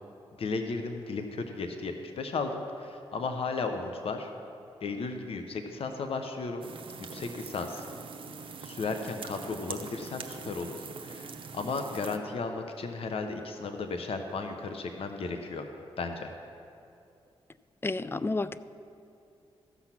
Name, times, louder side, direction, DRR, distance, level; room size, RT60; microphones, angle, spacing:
voice 1, 0.4-4.3 4.8-6.7 7.1-7.8 8.6-15.7 16.0-16.3, left 4 dB, 65° left, 6 dB, 0.8 m, -35 dB
sound 1, 6.6-12.2, right 5 dB, 55° right, 0.8 m, -43 dB
voice 2, 17.8-18.6, left 3 dB, 20° left, 15 dB, 0.4 m, -30 dB
14.0 x 6.1 x 5.9 m, 2.6 s
cardioid pair, 60°, 10 cm